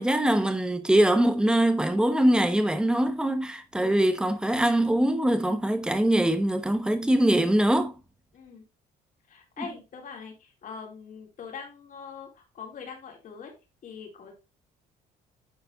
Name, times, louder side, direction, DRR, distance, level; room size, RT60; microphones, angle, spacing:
voice 1, 0.0-7.9, right 1 dB, 5° right, 1.2 m, -23 dB
voice 2, 8.3-8.6 9.3-13.5 13.8-14.3, left 6 dB, 50° left, 3.4 m, -43 dB
10.5 x 4.1 x 3.9 m
cardioid pair, 110°, 17 cm